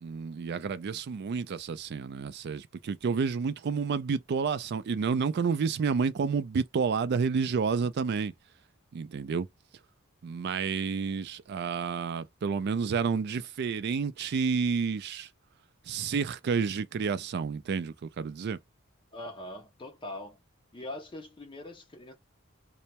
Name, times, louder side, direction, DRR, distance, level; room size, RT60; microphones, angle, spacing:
voice 1, 0.0-8.3 8.9-9.5 10.2-15.3 15.9-18.6, right 5 dB, 50° right, 0.3 m, -30 dB
voice 2, 19.1-20.4 20.7-22.1, left 1 dB, 25° left, 0.4 m, -42 dB
2.1 x 2.1 x 2.8 m
head